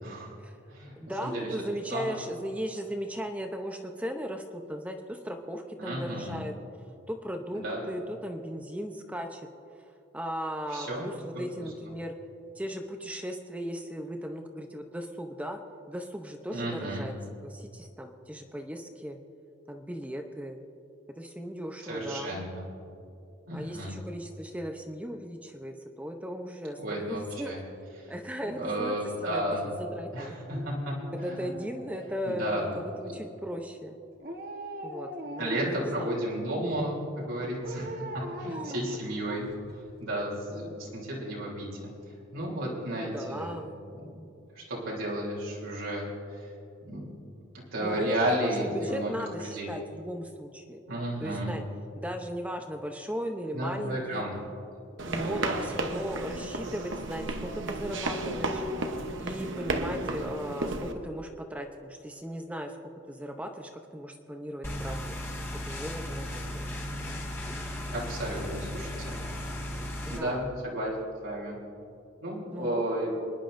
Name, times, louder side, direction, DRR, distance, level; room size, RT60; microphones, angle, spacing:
voice 1, 0.0-0.3 0.7-0.9 1.2-1.5 1.9-2.2 5.8-6.4 7.5-7.8 10.7-11.0 11.3-11.4 16.5-17.0 21.8-22.6 23.5-23.9 26.8-27.6 28.4-29.7 30.1-30.9 31.4-31.5 32.2-32.7 33.0-33.1 35.4-38.0 38.4-39.5 40.0-41.7 42.3-43.6 44.0-44.1 44.5-46.1 46.3-46.4 46.8-47.1 47.7-49.1 49.4-49.7 50.9-51.5 53.5-54.3 55.3-55.6 67.9-69.2 70.1-70.9 71.2-71.6 72.2-73.1, right 1 dB, 90° right, -5 dB, 3.2 m, -33 dB
voice 2, 1.0-6.5 7.1-9.5 10.1-12.2 12.6-15.6 15.9-17.1 17.4-19.2 19.7-20.6 21.1-22.4 23.5-27.5 28.1-29.0 29.2-30.4 31.1-34.0 34.8-36.1 38.5-38.7 40.7-40.8 42.9-43.8 47.8-48.1 48.4-50.8 51.2-51.6 52.0-54.2 55.1-58.6 59.2-62.8 63.1-65.2 65.5-66.6 70.0-70.5 72.5-72.9, equal, 5° right, 4 dB, 0.7 m, -37 dB
Dog, 30.4-32.5 34.2-35.9 37.6-39.7 40.1-40.2, right 1 dB, 45° right, 1.2 m, -41 dB
sound 1, 55.0-60.9, right 2 dB, 70° right, 1.0 m, -33 dB
sound 2, 64.6-70.2, left 1 dB, 10° left, 1.6 m, -36 dB
25.5 x 10.5 x 2.6 m, 2.6 s
head